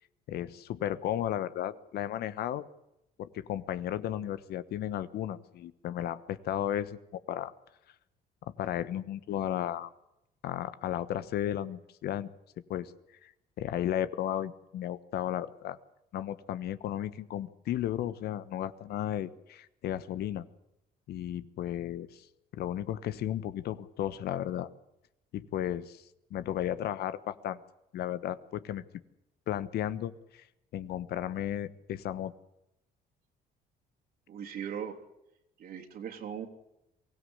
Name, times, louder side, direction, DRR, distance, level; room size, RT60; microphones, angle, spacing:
voice 1, 0.3-2.6 3.2-7.0 7.3-7.5 8.6-9.9 10.4-12.3 12.7-12.9 13.2-13.3 13.6-15.8 16.1-20.4 21.1-22.3 22.5-24.7 25.3-26.0 26.3-27.6 27.9-28.8 29.5-30.4 30.7-32.3, left 11 dB, 70° left, 14 dB, 1.3 m, -34 dB
voice 2, 34.3-35.0 35.6-36.5, right 8 dB, 60° right, 2 dB, 3.4 m, -39 dB
23.5 x 16.5 x 8.1 m, 0.87 s
cardioid pair, 110°, 17 cm